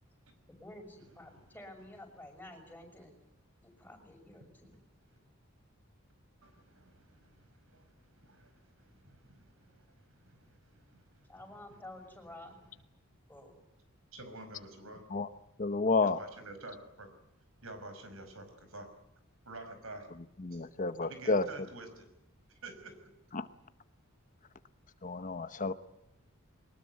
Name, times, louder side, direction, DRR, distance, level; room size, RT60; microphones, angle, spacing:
voice 1, 0.5-3.1 3.6-4.8 11.3-12.6 13.3-13.5, left 1 dB, 10° left, 3 dB, 6.0 m, -51 dB
voice 2, 6.4-11.3 14.1-15.0 16.0-17.1 17.6-18.9 19.5-20.1 20.5-20.7 21.0-22.1 22.6-23.1, right 2 dB, 70° right, 9 dB, 5.6 m, -49 dB
voice 3, 15.6-16.2 20.4-21.5 23.3-23.5 25.0-25.7, left 3 dB, 40° left, 12 dB, 0.9 m, -30 dB
23.0 x 20.0 x 9.5 m, 0.83 s
head